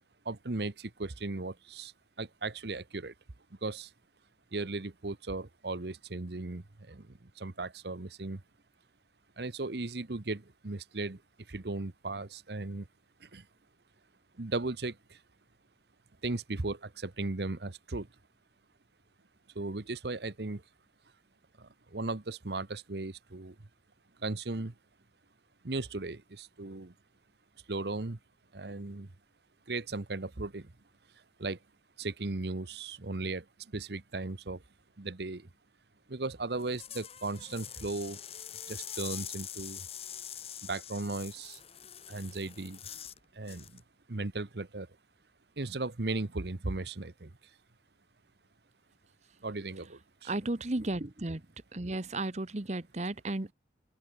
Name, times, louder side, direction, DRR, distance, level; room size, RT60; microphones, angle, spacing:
voice 1, 0.2-3.1 3.6-3.9 4.5-8.4 9.4-11.2 11.5-12.9 13.2-13.5 14.4-15.2 16.2-18.1 19.5-20.6 21.6-23.6 24.2-24.7 25.6-26.9 27.7-28.2 28.5-29.1 29.7-30.7 31.4-31.6 32.0-34.6 35.0-35.5 36.1-38.2 38.7-39.8 40.6-41.6 42.1-42.8 43.3-43.8 44.1-45.0 45.6-47.3 49.4-50.3, right 2 dB, 65° right, 1.1 m, -37 dB
sound 1, 36.5-43.2 43.5-43.8, left 10 dB, 35° left, 1.6 m, -44 dB
voice 2, 50.2-51.4 51.7-53.5, right 2 dB, 40° right, 1.1 m, -34 dB
open air
head